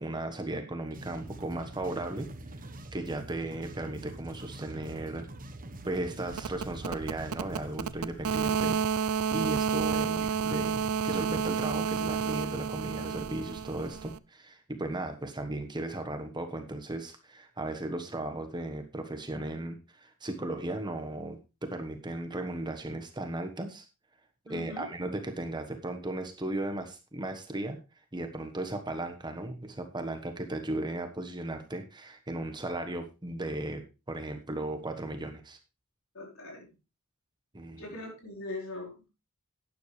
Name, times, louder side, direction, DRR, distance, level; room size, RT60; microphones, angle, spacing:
voice 1, 0.0-2.3 2.6-5.3 5.8-23.8 24.5-27.8 28.1-35.6 37.5-37.8, right 1 dB, 20° right, 6 dB, 1.3 m, -36 dB
sound 1, 0.9-7.9, right 1 dB, 40° right, 1.1 m, -44 dB
sound 2, 6.3-14.2, right 7 dB, 75° right, 0.5 m, -31 dB
voice 2, 24.5-24.9 36.1-36.7 37.8-39.1, left 2 dB, 65° left, 0 dB, 4.7 m, -41 dB
11.5 x 9.9 x 3.3 m, 0.28 s
head